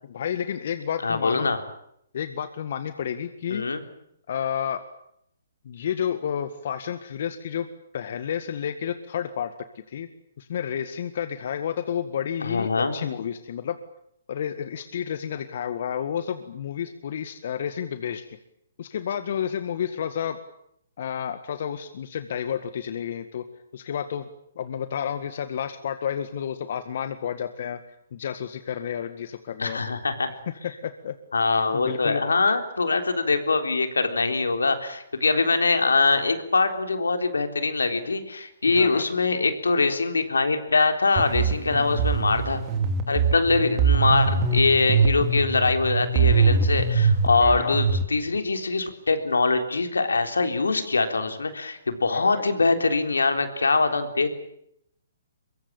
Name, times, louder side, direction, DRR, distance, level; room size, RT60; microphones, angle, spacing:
voice 1, 0.1-1.5 2.1-3.7 4.3-4.8 5.7-7.7 7.9-9.5 9.9-10.1 10.4-13.8 14.3-18.4 18.8-20.4 21.0-23.4 23.7-24.3 24.6-27.8 28.1-29.9 30.8-31.1 31.7-32.2 38.7-39.1 41.7-41.9 47.4-47.8 52.1-52.4, left 8 dB, 55° left, 10 dB, 1.8 m, -30 dB
voice 2, 1.0-1.6 3.5-3.8 12.4-12.9 29.6-30.3 31.3-42.6 43.1-54.3, left 3 dB, 90° left, 7 dB, 3.8 m, -23 dB
sound 1, 41.2-48.0, right 5 dB, 30° right, 3.4 m, -23 dB
23.5 x 23.0 x 8.9 m, 0.74 s
hypercardioid pair, 140°, 0 cm